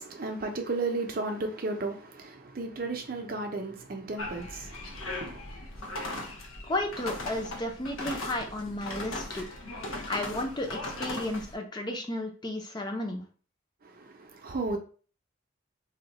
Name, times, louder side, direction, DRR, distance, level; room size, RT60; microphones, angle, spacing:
voice 1, 0.0-5.4 13.8-14.8, right 3 dB, 45° right, 0.5 m, -34 dB
sound 1, 4.2-11.5, left 1 dB, 90° left, 0.7 m, -38 dB
voice 2, 6.6-9.4 10.1-13.2, left 1 dB, 20° left, 0.5 m, -33 dB
2.8 x 2.1 x 4.0 m
head